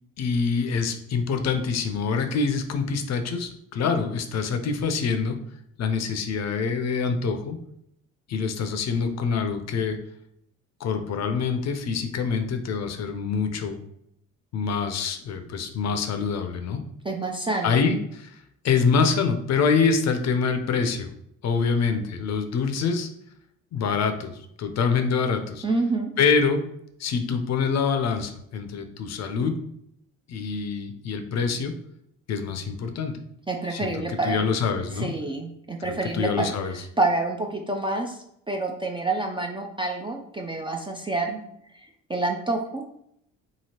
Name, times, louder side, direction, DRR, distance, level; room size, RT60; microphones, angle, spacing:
voice 1, 0.2-5.4 5.8-7.6 8.3-10.0 10.8-13.8 14.5-16.8 17.6-21.1 21.4-23.1 23.7-25.6 26.2-26.6 27.0-29.5 30.3-31.7 32.3-33.1 33.7-35.1 36.1-36.8, left 5 dB, 45° left, 7 dB, 0.5 m, -25 dB
voice 2, 17.0-17.8 25.6-26.1 33.5-34.4 34.9-36.5 37.0-38.2 38.5-41.4 41.7-42.8, right 2 dB, 15° right, 2 dB, 0.3 m, -27 dB
2.8 x 2.7 x 2.8 m, 0.74 s
hypercardioid pair, 55°, 38 cm